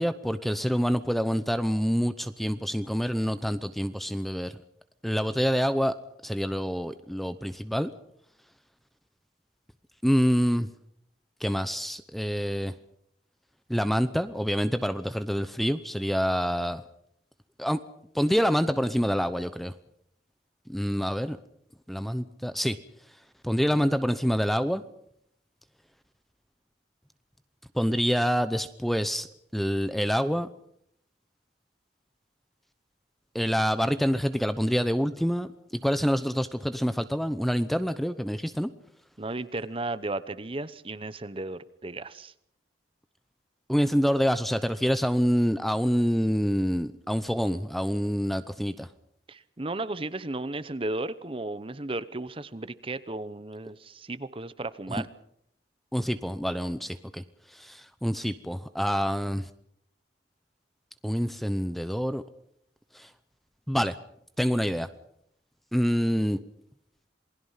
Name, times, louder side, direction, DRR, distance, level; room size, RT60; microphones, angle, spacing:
voice 1, 0.0-4.5 5.0-5.9 6.2-7.9 10.0-10.7 11.4-12.7 13.7-16.8 17.6-17.8 18.1-19.7 20.7-21.4 21.9-22.8 23.4-24.8 27.7-29.3 29.5-30.5 33.3-38.7 43.7-48.9 55.9-57.2 57.5-59.5 61.0-62.2 62.9-63.1 63.7-64.0 64.4-64.9 65.7-66.4, equal, ahead, 12 dB, 0.8 m, -26 dB
voice 2, 39.2-42.3 49.3-55.1, right 2 dB, 30° right, 15 dB, 0.9 m, -34 dB
27.5 x 20.0 x 5.7 m, 0.71 s
head